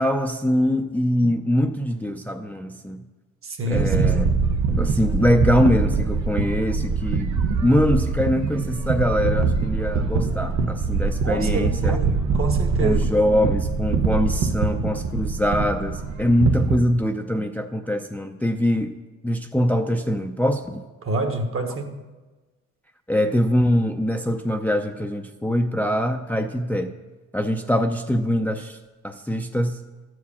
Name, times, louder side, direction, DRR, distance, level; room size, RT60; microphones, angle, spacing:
voice 1, 0.0-3.0 3.7-4.3 4.7-12.0 12.8-19.0 19.2-20.8 23.1-26.9 27.3-28.8 29.0-29.8, equal, 5° left, 0.5 m, -23 dB
voice 2, 3.4-4.2 11.2-13.1 21.0-21.9, right 3 dB, 45° right, 1.4 m, -27 dB
sound 1, 3.7-16.8, right 4 dB, 65° right, 0.8 m, -23 dB
13.0 x 4.8 x 7.2 m
cardioid pair, 90°, 30 cm